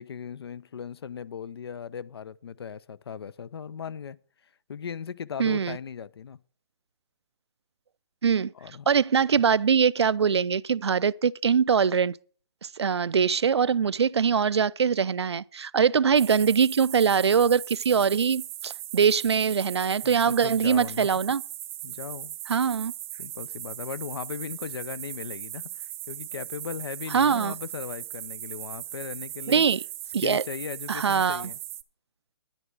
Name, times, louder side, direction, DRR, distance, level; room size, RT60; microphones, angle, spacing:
voice 1, 0.0-4.2 4.7-6.4 8.5-8.9 13.9-14.0 20.0-21.1 21.8-22.4 23.2-29.6 30.2-31.6, left 7 dB, 70° left, 0.6 m, -38 dB
voice 2, 5.4-5.8 8.2-8.5 8.9-12.2 12.8-21.4 22.5-22.9 27.1-27.5 29.5-29.8 30.1-30.4 30.9-31.5, right 6 dB, 90° right, 0.4 m, -23 dB
sound 1, 16.1-31.8, right 14 dB, 30° right, 0.5 m, -39 dB
10.5 x 10.0 x 4.6 m
hypercardioid pair, 145°, 14 cm